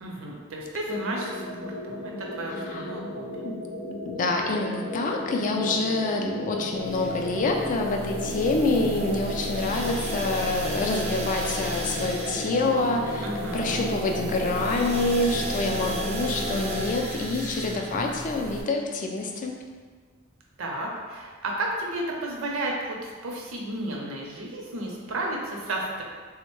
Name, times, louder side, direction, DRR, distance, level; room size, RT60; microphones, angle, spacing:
voice 1, 0.0-3.4 13.2-13.8 20.6-26.0, right 1 dB, 75° right, -1 dB, 0.6 m, -33 dB
sound 1, 0.9-16.9, left 1 dB, 80° left, 0.6 m, -34 dB
voice 2, 4.1-13.2 13.5-19.5, left 2 dB, 40° left, 2 dB, 0.3 m, -27 dB
sound 2, 6.7-18.6, right 1 dB, 30° right, 0.4 m, -34 dB
3.5 x 2.1 x 3.0 m, 1.5 s
head